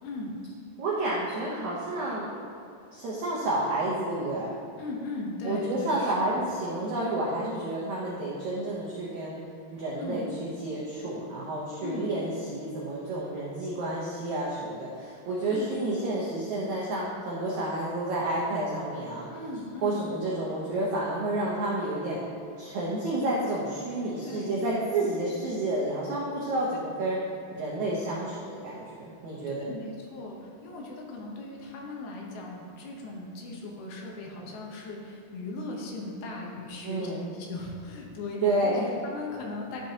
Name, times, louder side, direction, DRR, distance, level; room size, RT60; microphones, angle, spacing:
voice 1, 0.0-0.4 4.8-6.5 10.0-10.3 11.8-12.2 15.5-15.8 19.3-20.1 24.2-24.7 29.6-39.8, left 2 dB, 75° left, -2 dB, 2.9 m, -38 dB
voice 2, 0.8-2.3 2.9-4.5 5.4-9.4 9.7-19.3 19.8-22.2 22.6-27.2 27.5-29.7 36.8-37.3 38.4-38.8, right 2 dB, 80° right, -5 dB, 1.7 m, -30 dB
11.5 x 6.1 x 2.9 m, 2.5 s
omnidirectional pair, 4.7 m